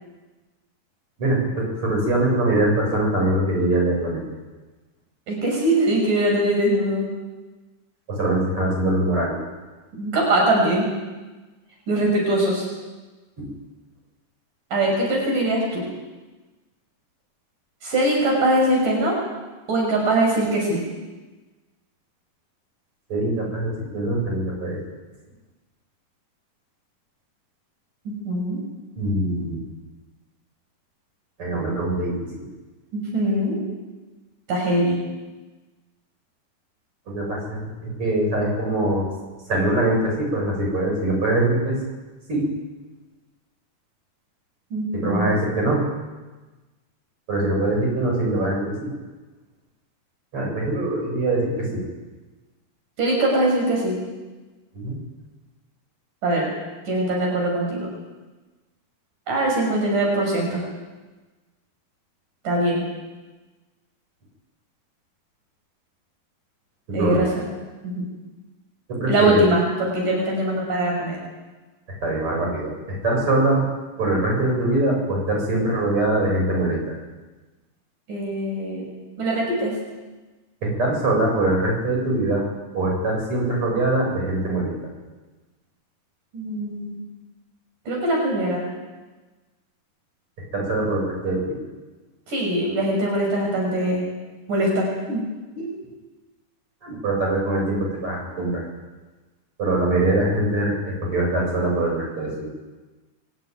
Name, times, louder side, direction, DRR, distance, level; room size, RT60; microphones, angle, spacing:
voice 1, 1.2-4.2 8.1-9.4 13.4-13.5 23.1-24.8 29.0-29.6 31.4-32.1 37.1-39.0 39.5-41.8 42.3-42.5 44.9-45.8 47.3-48.9 50.3-51.8 54.7-55.0 66.9-67.2 68.9-69.4 72.0-73.6 74.0-76.8 80.6-82.4 82.7-84.7 90.5-91.6 96.8-98.6 99.6-102.4, right 2 dB, 40° right, -1 dB, 8.8 m, -23 dB
voice 2, 5.3-7.1 10.0-10.9 11.9-12.7 14.7-15.9 17.8-19.2 19.7-20.8 28.1-28.6 32.9-33.6 34.5-35.0 44.7-45.4 53.0-54.0 56.2-56.5 56.9-57.9 59.3-60.6 62.4-62.9 66.9-67.3 67.8-68.1 69.1-71.2 78.1-78.9 79.2-79.7 86.3-87.0 87.9-88.6 92.3-94.0 94.5-95.3 95.6-95.7, right 1 dB, 85° right, -1 dB, 7.6 m, -22 dB
27.0 x 16.0 x 9.4 m, 1.2 s
omnidirectional pair, 3.6 m